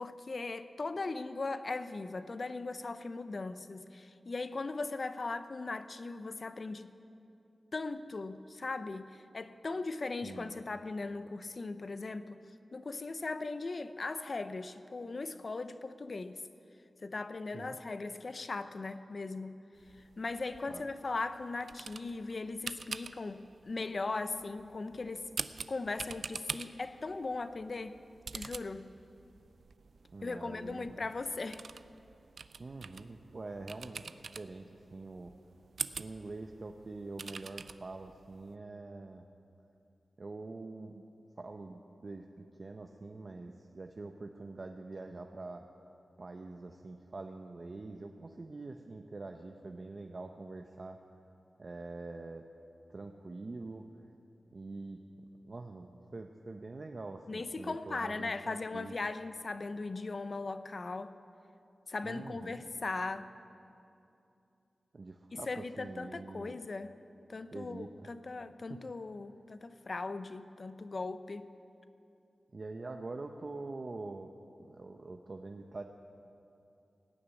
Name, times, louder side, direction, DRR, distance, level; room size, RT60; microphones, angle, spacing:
voice 1, 0.0-6.9 7.7-12.4 12.7-16.4 17.0-19.6 20.2-25.3 25.7-28.0 28.3-28.9 30.2-31.7 57.3-61.1 61.9-63.3 65.3-66.9 67.3-71.5, left 3 dB, 55° left, 11 dB, 0.7 m, -38 dB
sound 1, 19.8-38.5, right 5 dB, 75° right, 0.4 m, -46 dB
voice 2, 30.1-31.1 32.6-35.3 36.0-39.3 40.2-41.0 41.4-45.7 46.2-51.0 51.6-52.5 52.9-53.9 54.5-55.0 55.4-58.9 62.0-62.6 64.9-66.6 67.5-68.1 68.7-68.8 72.5-74.3 74.6-75.8, right 3 dB, 50° right, 4 dB, 0.7 m, -45 dB
18.0 x 6.9 x 9.1 m, 2.7 s
cardioid pair, 50°, 0 cm